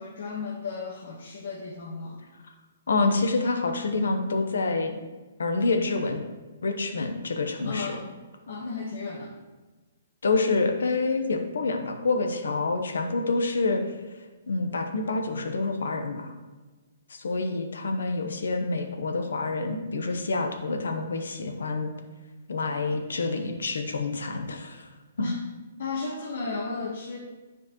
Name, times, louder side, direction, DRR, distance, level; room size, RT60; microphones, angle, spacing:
voice 1, 0.0-2.2 7.6-8.1 8.5-9.3 25.2-25.4 25.8-27.2, left 4 dB, 70° left, -2 dB, 1.2 m, -34 dB
voice 2, 2.9-5.0 5.4-6.2 6.6-8.0 10.2-13.8 14.5-16.3 17.1-21.9 22.5-24.9 25.2-25.3, left 3 dB, 90° left, 5 dB, 0.9 m, -27 dB
10.0 x 5.0 x 3.0 m, 1.2 s
hypercardioid pair, 155°, 0 cm